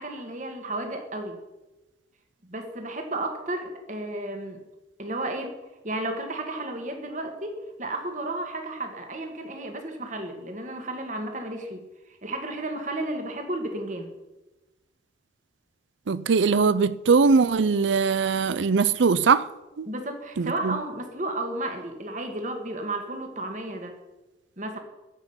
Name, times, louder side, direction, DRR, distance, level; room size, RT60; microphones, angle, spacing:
voice 1, 0.0-1.4 2.4-4.6 5.0-5.6 5.8-11.8 12.2-14.1 19.9-24.0 24.6-24.8, right 2 dB, 40° right, 1.9 m, -33 dB
voice 2, 16.1-19.5 19.8-19.9 20.4-20.8, right 5 dB, 80° right, 0.5 m, -21 dB
14.5 x 6.1 x 9.8 m
head